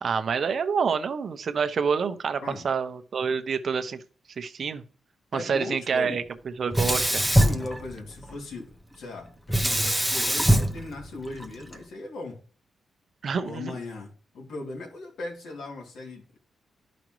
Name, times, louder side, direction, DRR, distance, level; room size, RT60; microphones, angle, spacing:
voice 1, 0.0-4.0 4.4-4.8 5.3-6.2 6.6-7.2 13.2-13.7, right 6 dB, 55° right, 10 dB, 0.8 m, -27 dB
voice 2, 5.3-6.2 7.4-12.4 13.4-16.4, left 2 dB, 90° left, 1 dB, 2.4 m, -38 dB
Sink (filling or washing), 6.7-8.4 9.5-11.8, equal, ahead, 0.7 m, -23 dB
12.0 x 5.1 x 3.1 m, 0.41 s
cardioid pair, 115°, 0 cm